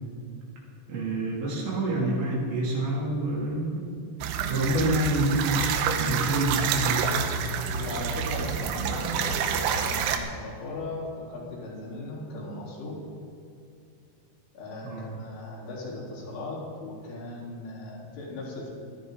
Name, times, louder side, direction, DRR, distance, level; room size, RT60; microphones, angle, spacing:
voice 1, 0.9-3.8 4.5-5.7 6.0-7.1 14.8-15.2, right 1 dB, 65° right, -4 dB, 5.4 m, -27 dB
sound 1, 4.2-10.2, right 7 dB, 85° right, 3.4 m, -28 dB
voice 2, 7.6-13.0 14.5-18.7, left 2 dB, 80° left, -6 dB, 6.5 m, -38 dB
20.0 x 14.5 x 4.0 m, 2.5 s
omnidirectional pair, 5.5 m